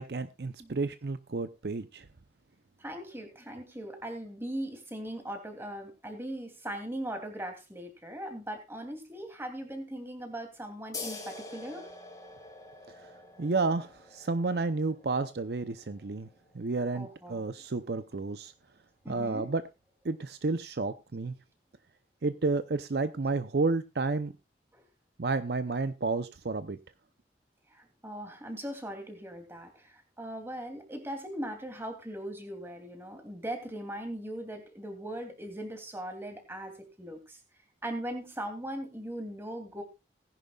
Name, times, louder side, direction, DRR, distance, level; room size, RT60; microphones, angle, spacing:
voice 1, 0.0-2.1 13.4-16.3 16.5-18.5 19.1-19.6 20.0-21.4 22.2-24.3 25.2-26.8, right 3 dB, 65° right, 0.6 m, -31 dB
voice 2, 2.8-11.9 16.9-17.5 19.0-19.5 24.7-24.8 27.7-37.4 37.8-39.8, right 1 dB, 15° right, 2.8 m, -39 dB
sound 1, 10.9-18.1, left 3 dB, 20° left, 2.4 m, -47 dB
18.5 x 11.0 x 2.4 m
head